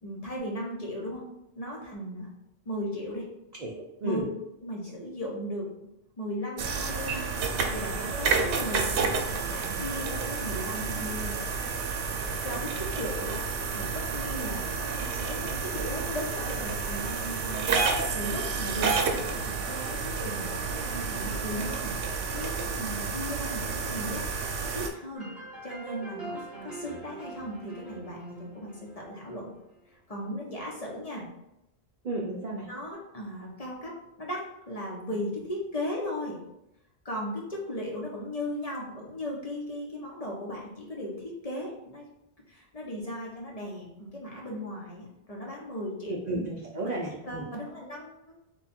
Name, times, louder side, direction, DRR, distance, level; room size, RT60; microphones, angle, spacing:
voice 1, 0.0-1.2 1.5-2.3 2.6-3.3 4.0-4.3 4.6-5.7 6.2-7.3 7.7-11.4 12.4-13.4 13.7-17.7 18.1-18.9 19.1-24.2 24.6-25.3 25.6-29.5 30.1-31.3 32.3-32.4 32.7-36.4 37.0-42.0 42.5-46.2 46.7-46.9 47.2-48.3, equal, 40° left, -2 dB, 0.8 m, -37 dB
voice 2, 3.6-4.3 18.7-19.2 32.0-32.7 46.1-47.4, right 2 dB, 55° right, -3 dB, 0.5 m, -33 dB
sound 1, 6.6-24.9, right 4 dB, 90° right, 0.9 m, -30 dB
sound 2, 25.1-29.7, right 2 dB, ahead, 1.0 m, -43 dB
3.4 x 2.3 x 4.2 m, 0.86 s
omnidirectional pair, 1.1 m